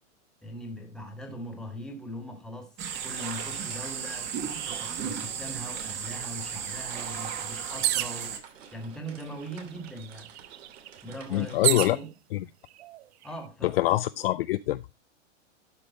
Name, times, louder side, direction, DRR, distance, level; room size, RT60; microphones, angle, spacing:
voice 1, 0.4-2.7 3.0-10.3 11.0-12.1 13.2-14.0, right 1 dB, ahead, 1.7 m, -41 dB
sound 1, 2.8-8.4, right 7 dB, 30° right, 1.4 m, -35 dB
sound 2, 3.0-11.7, right 7 dB, 75° right, 2.7 m, -51 dB
sound 3, 7.8-8.3 9.2-9.3 9.6-12.0 12.8-13.3, right 14 dB, 55° right, 0.6 m, -29 dB
voice 2, 11.3-12.0 13.8-14.9, left 15 dB, 50° left, 0.5 m, -25 dB
12.0 x 5.3 x 4.1 m
supercardioid pair, 155°, 38 cm